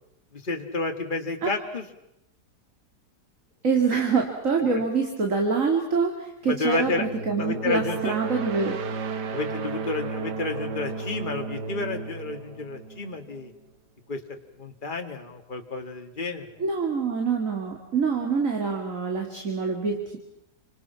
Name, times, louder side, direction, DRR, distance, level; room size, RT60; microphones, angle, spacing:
voice 1, 0.3-1.9 3.9-4.0 4.7-4.8 6.4-7.1 7.4-8.1 9.3-13.5 14.1-14.2 14.6-16.6, left 3 dB, 30° left, 4 dB, 2.1 m, -30 dB
voice 2, 3.6-8.8 16.6-20.2, right 5 dB, 50° right, 2 dB, 3.0 m, -25 dB
sound 1, 6.9-13.5, right 4 dB, 80° right, 2.0 m, -34 dB
29.5 x 25.5 x 5.8 m, 0.81 s
omnidirectional pair, 1.8 m